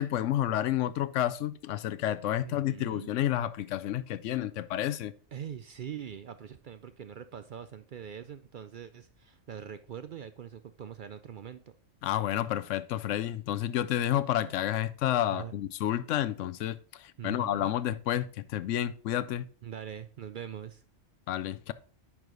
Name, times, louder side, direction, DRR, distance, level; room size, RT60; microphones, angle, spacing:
voice 1, 0.0-5.1 12.0-19.5 21.3-21.7, left 12 dB, 85° left, 0.9 m, -30 dB
voice 2, 2.4-3.1 5.3-11.6 14.4-14.5 15.3-15.6 17.2-17.7 19.6-20.8, right 9 dB, 60° right, 0.5 m, -43 dB
10.0 x 4.8 x 3.8 m
omnidirectional pair, 1.2 m